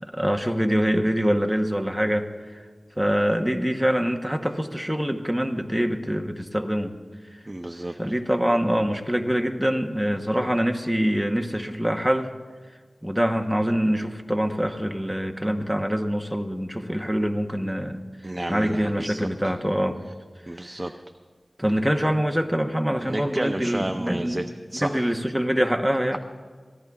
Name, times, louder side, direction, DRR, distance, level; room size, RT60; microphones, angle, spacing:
voice 1, 0.0-2.6 3.0-7.0 8.0-12.3 13.0-18.0 18.5-20.0 20.5-20.6 21.6-24.5 24.7-26.2, equal, 5° right, 4 dB, 1.0 m, -24 dB
voice 2, 7.5-7.9 18.2-19.5 20.5-20.9 23.0-25.0, right 1 dB, 30° right, 6 dB, 0.6 m, -31 dB
24.5 x 18.5 x 2.4 m, 1.5 s
wide cardioid pair, 60°, 0 cm